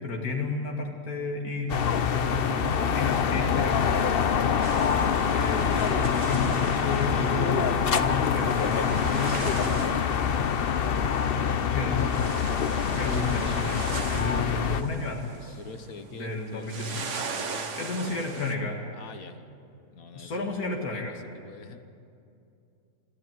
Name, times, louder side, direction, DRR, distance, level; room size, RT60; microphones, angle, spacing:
voice 1, 0.0-3.8 5.3-10.0 11.7-12.1 12.8-13.8 14.1-15.6 16.1-17.2 17.7-18.8 20.1-21.2, left 3 dB, 90° left, 0 dB, 2.6 m, -32 dB
sound 1, 1.7-14.8, left 7 dB, 50° left, 0.8 m, -25 dB
sound 2, 4.6-11.0 11.2-11.3 11.5-16.1 16.4-18.5, right 5 dB, 55° right, 1.5 m, -39 dB
voice 2, 11.4-12.1 15.6-17.1 17.3-18.4 18.9-19.5 19.9-20.6 20.9-21.9, left 4 dB, 75° left, 8 dB, 1.8 m, -46 dB
25.0 x 14.0 x 9.3 m, 2.6 s
omnidirectional pair, 1.5 m